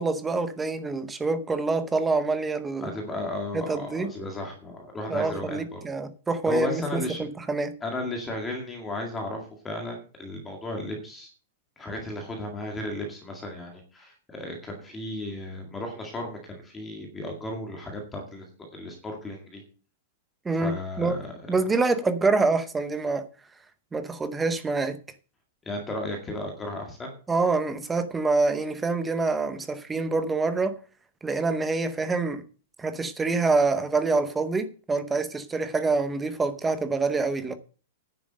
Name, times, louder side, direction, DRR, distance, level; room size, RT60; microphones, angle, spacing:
voice 1, 0.0-2.9 3.5-4.1 5.1-7.7 20.4-21.2 21.5-23.2 23.9-25.0 27.3-30.8 31.2-32.4 32.8-37.6, right 3 dB, 5° right, 0.8 m, -26 dB
voice 2, 2.8-5.8 6.5-7.2 7.8-11.3 11.8-19.6 20.5-21.3 25.7-27.1, left 1 dB, 10° left, 2.0 m, -34 dB
10.5 x 7.1 x 6.6 m
supercardioid pair, 175°, 0 cm